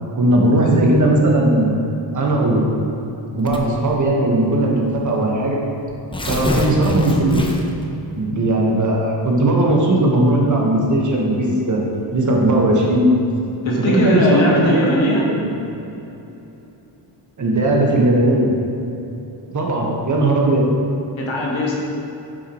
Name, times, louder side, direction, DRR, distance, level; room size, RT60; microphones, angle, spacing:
voice 1, 0.1-1.8 2.1-2.7 3.3-5.6 6.3-7.5 8.1-11.8 12.1-13.1 13.9-14.8 15.2-15.4 17.4-18.5 19.5-20.6, right 1 dB, 40° right, -2 dB, 1.6 m, -17 dB
Tearing, 3.5-3.9 4.7-4.8 5.1-5.2 5.9-7.8, left 1 dB, 10° left, 0.8 m, -25 dB
voice 2, 13.6-15.2 21.2-21.8, left 1 dB, 85° left, -3 dB, 1.9 m, -18 dB
9.6 x 7.5 x 3.2 m, 3.0 s
cardioid pair, 105°, 46 cm